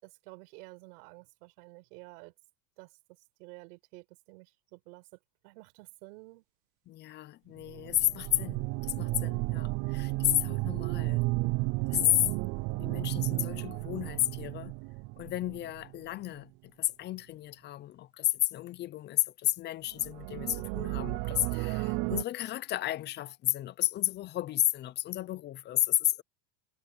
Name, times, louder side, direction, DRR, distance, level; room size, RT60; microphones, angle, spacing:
voice 1, 0.0-2.3 2.8-2.9 3.4-5.1 5.4-6.4, right 26 dB, 70° right, 4.8 m, -51 dB
voice 2, 6.9-11.3 11.9-12.3 12.8-14.7 15.2-26.2, left 14 dB, 25° left, 0.4 m, -32 dB
sound 1, 7.6-16.0 20.0-22.2, right 25 dB, 45° right, 0.5 m, -33 dB
supercardioid pair, 140°, 47 cm